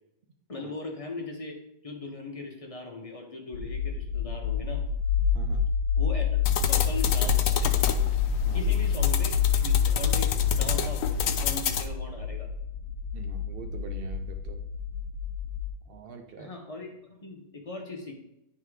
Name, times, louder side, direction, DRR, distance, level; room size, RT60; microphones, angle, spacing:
voice 1, 0.5-1.5 1.8-4.8 6.0-7.7 8.5-9.3 9.6-12.5 16.4-18.2, left 2 dB, 30° left, 1 dB, 0.7 m, -39 dB
sound 1, 3.5-15.7, left 7 dB, 90° left, 1.2 m, -27 dB
voice 2, 5.3-5.7 8.4-8.8 13.1-14.6 15.9-16.5, right 5 dB, 80° right, 4 dB, 0.5 m, -43 dB
sound 2, 6.5-11.9, left 8 dB, 70° left, 0.9 m, -31 dB
10.0 x 3.7 x 3.1 m, 0.87 s
omnidirectional pair, 1.7 m